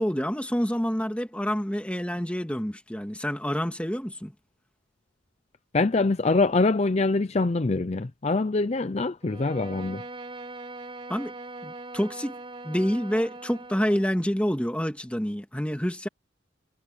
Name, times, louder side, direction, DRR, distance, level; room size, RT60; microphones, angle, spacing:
voice 1, 0.0-4.3 11.1-11.3 11.6-12.3 12.6-16.1, equal, 5° left, 1.8 m, -27 dB
voice 2, 5.7-10.0, left 3 dB, 35° left, 0.5 m, -24 dB
Bowed string instrument, 9.2-14.1, right 2 dB, 30° right, 2.1 m, -41 dB
head